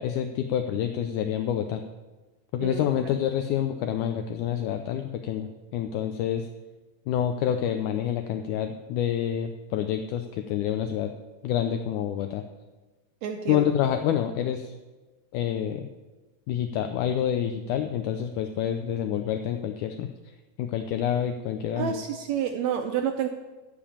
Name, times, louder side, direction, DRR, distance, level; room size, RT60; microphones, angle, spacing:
voice 1, 0.0-1.8 2.5-6.5 7.1-11.1 11.4-12.4 13.5-14.7 15.3-15.9 16.5-20.1 20.6-21.9, left 10 dB, 80° left, 6 dB, 1.9 m, -27 dB
voice 2, 13.2-13.7 21.8-23.3, right 8 dB, 80° right, 5 dB, 1.6 m, -29 dB
12.5 x 5.3 x 8.5 m, 1.2 s
omnidirectional pair, 4.0 m